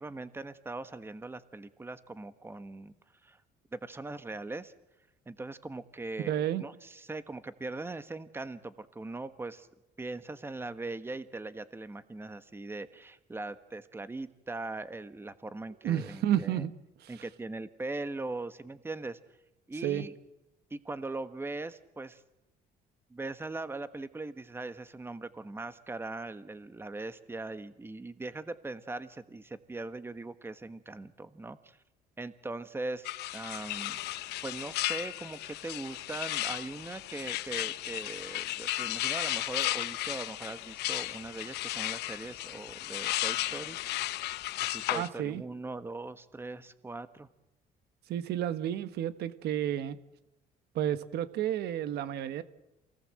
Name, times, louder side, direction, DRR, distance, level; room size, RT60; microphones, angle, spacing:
voice 1, 0.0-2.9 3.2-3.4 3.7-4.7 5.3-9.7 10.0-16.6 17.1-19.2 19.7-20.1 20.7-22.2 23.1-31.8 32.2-34.0 34.4-43.8 44.6-47.3, right 2 dB, 15° right, 12 dB, 1.3 m, -40 dB
voice 2, 6.3-6.6 15.8-16.7 17.0-17.1 19.8-20.0 44.9-45.4 48.1-50.0 50.7-52.4, right 11 dB, 75° right, 12 dB, 1.4 m, -31 dB
sound 1, 33.1-45.1, left 16 dB, 80° left, 0.9 m, -34 dB
27.5 x 18.5 x 7.7 m, 0.94 s
cardioid pair, 110°, 17 cm